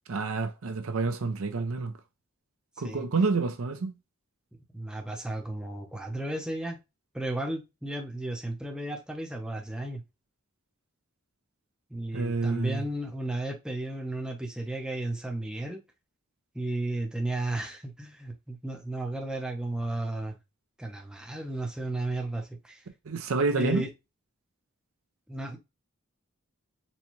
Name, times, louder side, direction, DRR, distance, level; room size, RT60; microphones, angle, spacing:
voice 1, 0.1-1.9 2.8-3.9 12.1-12.8 23.1-23.8, right 4 dB, 75° right, 0.6 m, -28 dB
voice 2, 4.7-6.8 7.1-10.0 11.9-15.8 16.5-20.4 20.8-22.8 23.6-23.9 25.3-25.6, right 1 dB, 5° right, 0.5 m, -33 dB
4.2 x 2.2 x 3.0 m
head